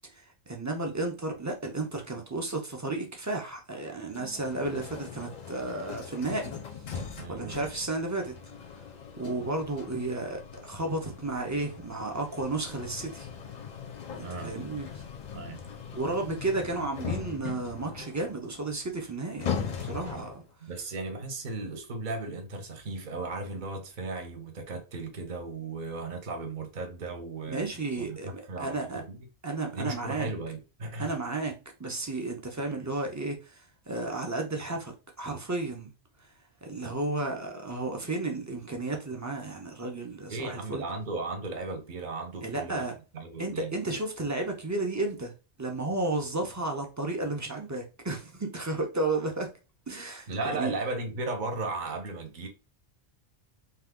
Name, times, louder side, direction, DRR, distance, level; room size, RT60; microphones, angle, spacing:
voice 1, 0.1-6.6 6.9-7.0 7.3-8.3 9.2-13.3 14.2-15.0 15.9-20.4 27.5-29.0 29.4-30.3 31.0-35.9 36.6-40.8 42.4-42.9 43.4-45.3 45.6-49.5 49.9-50.7, right 2 dB, 25° right, 0.4 m, -33 dB
sound 1, 4.1-20.5, left 6 dB, 50° left, 0.5 m, -40 dB
voice 2, 7.1-7.6 14.2-14.5 15.3-15.6 20.6-27.7 28.0-29.2 29.7-31.1 40.3-42.9 43.1-43.7 50.3-52.5, right 3 dB, 50° right, 0.8 m, -36 dB
2.8 x 2.3 x 3.6 m
omnidirectional pair, 1.2 m